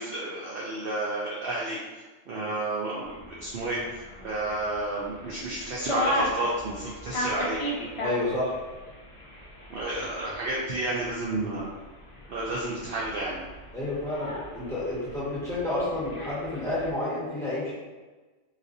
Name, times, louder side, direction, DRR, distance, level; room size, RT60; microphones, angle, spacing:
voice 1, 0.0-1.8 2.3-7.6 9.7-11.7 12.3-13.4, right 2 dB, 60° right, -5 dB, 0.7 m, -31 dB
sound 1, 3.0-16.9, equal, 60° left, 0.3 m, -37 dB
voice 2, 8.0-8.6 13.7-17.7, left 2 dB, ahead, -10 dB, 1.2 m, -30 dB
4.0 x 2.5 x 2.5 m, 1.3 s
omnidirectional pair, 1.3 m